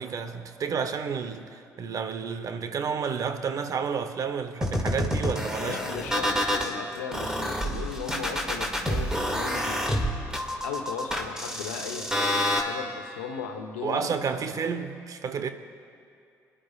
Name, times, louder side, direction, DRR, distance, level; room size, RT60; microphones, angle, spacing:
voice 1, 0.0-5.8 13.8-15.5, right 6 dB, 50° right, 0.9 m, -31 dB
sound 1, 4.6-6.7 7.1-12.6, equal, 10° right, 2.2 m, -28 dB
voice 2, 5.6-9.8 10.6-14.1, left 6 dB, 85° left, 1.0 m, -37 dB
25.5 x 11.5 x 2.4 m
hypercardioid pair, 50°, 8 cm